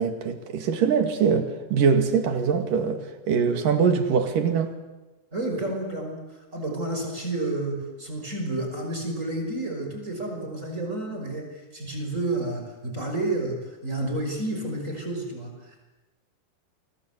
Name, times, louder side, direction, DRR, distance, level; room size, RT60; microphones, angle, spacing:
voice 1, 0.0-4.8, right 6 dB, 70° right, 3.8 m, -23 dB
voice 2, 5.3-15.8, right 2 dB, 20° right, 5.9 m, -30 dB
29.5 x 24.5 x 8.3 m
omnidirectional pair, 4.0 m